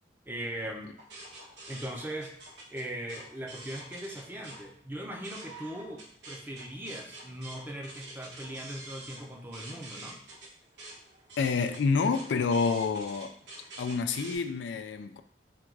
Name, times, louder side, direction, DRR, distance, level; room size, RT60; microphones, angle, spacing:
voice 1, 0.3-0.9 1.7-2.3 2.7-10.2, right 1 dB, 10° right, 0.5 m, -39 dB
sound 1, 1.0-4.6 5.0-14.4, right 2 dB, 75° right, 1.3 m, -47 dB
voice 2, 11.4-13.3 13.8-15.2, left 5 dB, 85° left, 0.4 m, -28 dB
3.7 x 2.3 x 4.5 m
head